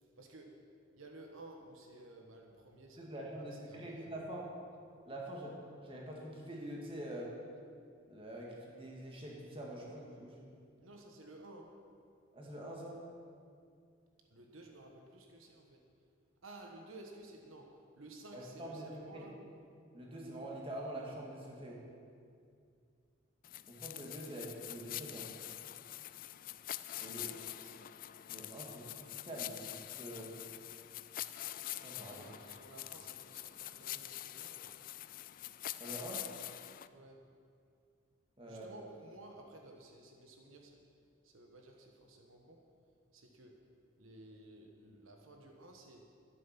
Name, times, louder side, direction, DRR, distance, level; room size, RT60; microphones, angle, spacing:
voice 1, 0.2-0.6 0.9-4.3 10.8-11.8 14.3-15.9 16.4-19.4 26.9-27.9 32.0-34.7 36.9-37.3 38.5-40.9 41.2-42.7 43.1-43.7 44.0-46.1, right 2 dB, 85° right, 3 dB, 1.3 m, -55 dB
voice 2, 3.0-4.5 5.1-7.3 8.1-10.5 12.3-13.0 18.3-19.2 19.9-21.8 23.7-25.3 27.0-27.3 28.3-30.3 31.8-32.2 35.8-36.3 38.4-38.8, right 1 dB, 25° right, -2 dB, 2.0 m, -45 dB
sound 1, 23.4-36.9, left 14 dB, 40° left, 0.3 m, -45 dB
12.0 x 10.5 x 5.9 m, 2.3 s
head